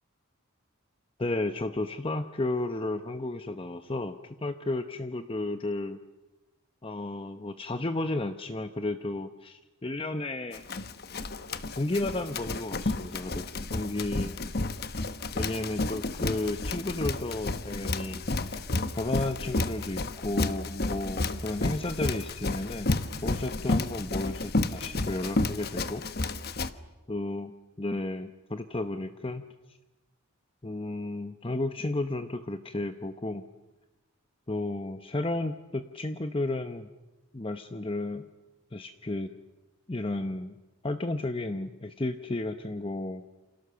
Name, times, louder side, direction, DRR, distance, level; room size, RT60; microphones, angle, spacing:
voice 1, 1.2-6.0 6.8-10.6 11.8-13.4 13.7-14.3 15.3-18.6 18.9-22.9 23.2-26.0 27.1-27.5 27.8-29.4 30.6-33.4 34.5-36.9 37.3-38.2 38.7-39.3 39.9-40.6 40.8-43.2, left 2 dB, 25° left, 8 dB, 0.8 m, -33 dB
Run, 10.5-26.7, left 2 dB, 45° left, 1.1 m, -31 dB
29.0 x 27.5 x 6.9 m, 1.1 s
head